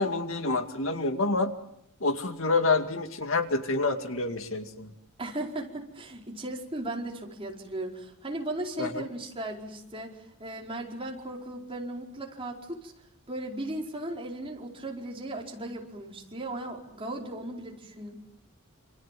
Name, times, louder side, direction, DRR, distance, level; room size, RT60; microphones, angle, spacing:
voice 1, 0.0-1.5 2.0-4.9 8.8-9.0, left 3 dB, 65° left, 7 dB, 2.3 m, -27 dB
voice 2, 5.2-12.9 13.3-18.1, right 1 dB, 25° right, 0 dB, 4.7 m, -37 dB
28.0 x 28.0 x 7.6 m, 0.73 s
head